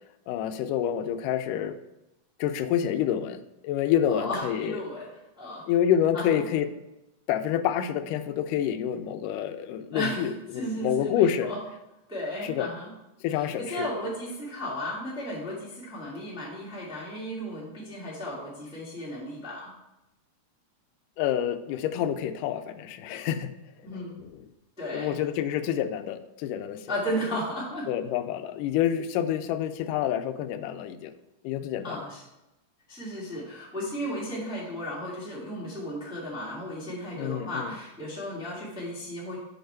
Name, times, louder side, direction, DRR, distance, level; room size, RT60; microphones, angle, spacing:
voice 1, 0.3-1.8 2.4-4.8 5.7-6.7 7.3-11.5 12.4-12.7 13.2-13.9 21.2-23.6 23.9-24.5 24.9-26.9 27.9-31.1 31.4-32.1 37.2-37.7, left 10 dB, 85° left, 10 dB, 2.1 m, -28 dB
voice 2, 4.1-5.6 6.1-6.4 9.9-11.6 12.1-12.9 13.3-19.7 23.8-24.2 24.8-25.2 26.9-27.9 31.8-32.2 32.9-39.4, equal, ahead, -6 dB, 1.6 m, -34 dB
6.6 x 5.6 x 4.5 m, 0.93 s
omnidirectional pair, 3.7 m